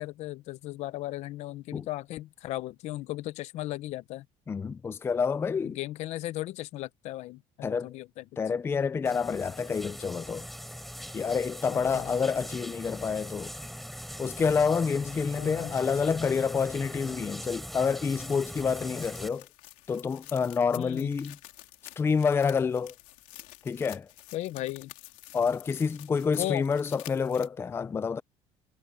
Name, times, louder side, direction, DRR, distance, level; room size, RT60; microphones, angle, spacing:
voice 1, 0.0-4.3 5.6-8.2 11.7-12.2 15.3-15.8 20.8-21.1 24.3-24.9 26.4-26.7, left 16 dB, 65° left, 0.8 m, -36 dB
voice 2, 4.5-5.8 7.6-7.9 8.4-10.5 11.1-13.5 14.2-19.5 19.9-21.4 22.0-22.9 23.6-24.1 25.3-28.2, left 5 dB, 20° left, 0.4 m, -28 dB
sound 1, 9.0-19.3, equal, ahead, 4.5 m, -41 dB
sound 2, 18.1-27.5, left 18 dB, 80° left, 3.0 m, -50 dB
cardioid pair, 135°, 12 cm